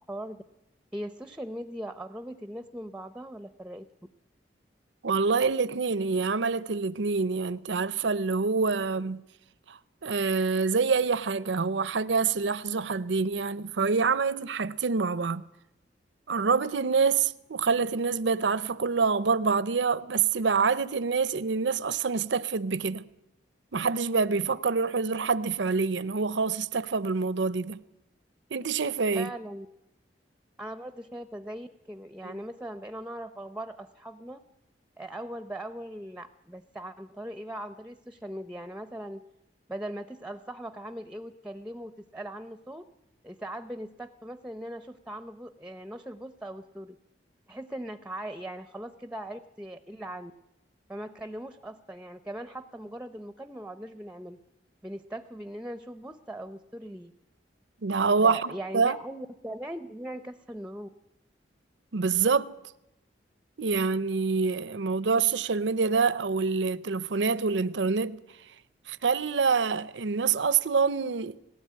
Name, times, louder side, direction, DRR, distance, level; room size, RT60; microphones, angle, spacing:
voice 1, 0.1-0.4 0.9-3.9 29.1-29.7 30.6-34.4 35.0-39.2 39.7-42.9 43.2-47.0 47.5-50.3 50.9-54.4 54.8-57.1 58.2-60.9, right 1 dB, 5° right, 0.7 m, -40 dB
voice 2, 5.0-9.2 9.7-15.4 16.3-23.0 23.7-27.8 28.5-29.3 32.2-32.4 57.8-59.0 61.9-62.5 63.6-68.2 68.9-71.4, right 5 dB, 80° right, 0.7 m, -26 dB
19.0 x 16.5 x 9.5 m
head